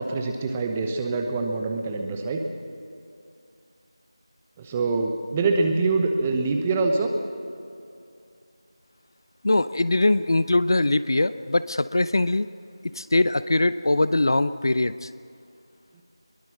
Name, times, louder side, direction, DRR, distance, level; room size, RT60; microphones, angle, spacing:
voice 1, 0.0-2.4 4.6-7.1, right 3 dB, 10° right, 3 dB, 0.9 m, -25 dB
voice 2, 9.4-12.5 12.9-15.1, left 2 dB, 50° left, 15 dB, 0.6 m, -22 dB
22.5 x 22.0 x 6.4 m, 2.6 s
figure-of-eight pair, 175°, 3 cm